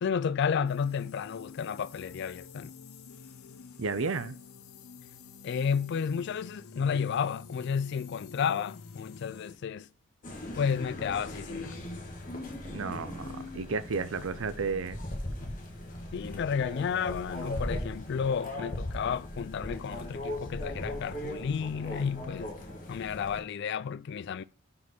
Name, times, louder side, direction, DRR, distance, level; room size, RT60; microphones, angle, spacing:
voice 1, 0.0-2.7 5.4-9.9 10.5-11.8 16.1-22.5 22.9-24.4, left 6 dB, 55° left, 0.3 m, -32 dB
sound 1, 0.6-9.6, left 5 dB, 90° left, 0.8 m, -49 dB
voice 2, 3.8-4.4 12.7-15.0, right 4 dB, 70° right, 0.6 m, -32 dB
sound 2, 10.2-23.4, left 1 dB, 40° left, 1.5 m, -39 dB
5.6 x 5.1 x 6.0 m
head